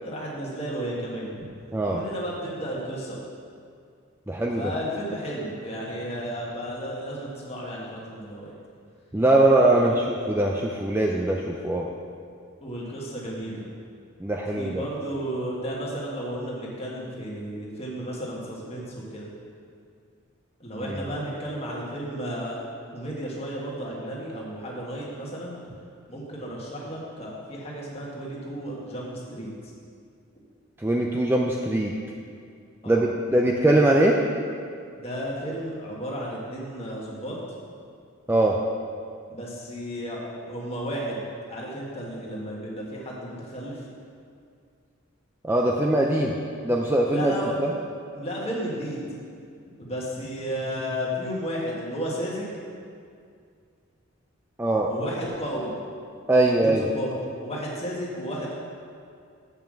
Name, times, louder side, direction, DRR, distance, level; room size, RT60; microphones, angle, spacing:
voice 1, 0.0-1.5 1.9-3.2 4.6-8.5 9.7-10.0 12.6-13.7 14.6-19.3 20.6-22.6 22.9-25.6 26.1-29.5 32.8-33.1 34.9-37.4 39.3-43.7 47.1-47.8 48.1-49.1 49.8-52.6 54.9-55.8 56.3-57.1 57.4-58.6, equal, 30° left, -4 dB, 1.6 m, -33 dB
voice 2, 1.7-2.0 4.3-4.7 9.1-11.9 14.2-14.8 20.8-21.0 30.8-31.9 32.9-34.2 38.3-38.6 45.4-46.4 46.6-47.7 54.6-54.9 56.3-56.8, right 1 dB, 10° right, -1 dB, 0.4 m, -22 dB
7.0 x 5.7 x 7.5 m, 2.3 s
head